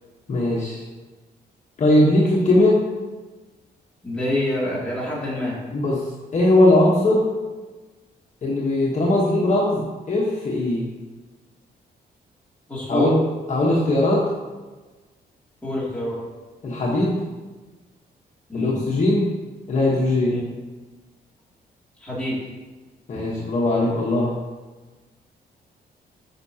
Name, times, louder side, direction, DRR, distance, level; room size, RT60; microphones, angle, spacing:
voice 1, 0.3-0.8 1.8-2.8 5.7-6.1 6.3-7.2 8.4-10.9 12.9-13.1 13.5-14.2 16.6-17.2 18.5-19.3 19.7-20.4 23.1-24.3, left 1 dB, 45° left, -5 dB, 1.2 m, -19 dB
voice 2, 4.0-5.6 12.7-13.1 15.6-16.2 18.5-18.8 20.2-20.5 22.0-22.4, left 1 dB, 5° left, -7 dB, 2.5 m, -26 dB
9.8 x 5.6 x 2.8 m, 1.2 s
wide cardioid pair, 150°, 17 cm